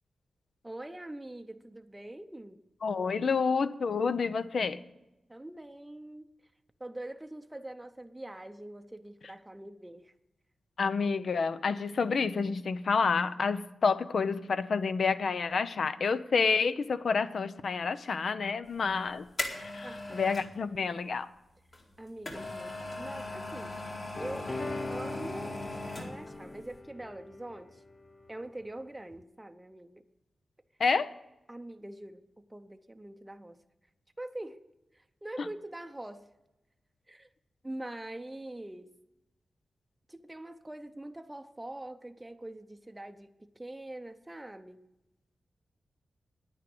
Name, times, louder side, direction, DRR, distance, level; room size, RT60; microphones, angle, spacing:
voice 1, 0.6-2.6 5.3-6.3 6.8-10.1 19.8-20.2 22.0-23.8 24.2-24.5 24.9-25.6 26.0-27.8 28.3-30.0 31.5-33.6 34.2-34.6 34.9-36.3 37.1-37.3 37.6-38.9 40.1-44.8, right 1 dB, 10° right, 0.7 m, -44 dB
voice 2, 2.8-4.8 10.8-19.3 19.6-21.3 30.8-31.1, left 5 dB, 65° left, 0.6 m, -29 dB
sound 1, 18.8-20.5 21.7-26.4 26.7-26.8, left 2 dB, 40° left, 2.2 m, -39 dB
sound 2, 24.1-28.3 29.1-29.2, left 2 dB, 25° left, 0.4 m, -41 dB
9.9 x 9.1 x 7.7 m
wide cardioid pair, 120°, 0 cm